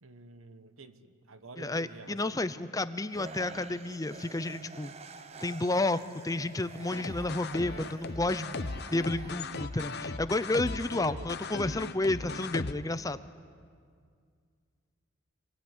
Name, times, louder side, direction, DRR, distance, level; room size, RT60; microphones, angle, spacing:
voice 1, 0.0-2.5 11.0-11.3, right 4 dB, 75° right, 11 dB, 1.2 m, -49 dB
voice 2, 1.6-4.9 5.4-8.6 8.9-13.2, left 2 dB, 15° left, 13 dB, 0.6 m, -31 dB
sound 1, 3.1-10.3, right 3 dB, 30° right, 0.7 m, -48 dB
sound 2, 6.9-12.7, left 3 dB, 50° left, 0.8 m, -38 dB
26.0 x 20.0 x 9.7 m, 2.1 s
head